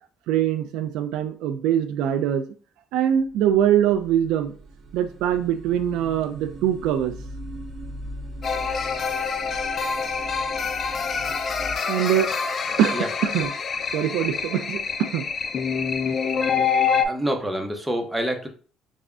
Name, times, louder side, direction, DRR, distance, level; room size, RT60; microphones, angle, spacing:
voice 1, 0.3-2.4 2.9-4.5 4.9-7.1 11.9-12.3 12.8-13.5 13.9-15.2, right 10 dB, 85° right, 8 dB, 0.4 m, -23 dB
sound 1, 3.1-11.8, right 1 dB, 55° right, 0.7 m, -40 dB
sound 2, 8.4-17.1, left 6 dB, 40° left, 0.4 m, -26 dB
voice 2, 17.1-18.5, right 1 dB, 10° right, 3 dB, 0.7 m, -26 dB
3.5 x 2.1 x 3.6 m, 0.39 s
cardioid pair, 110°, 0 cm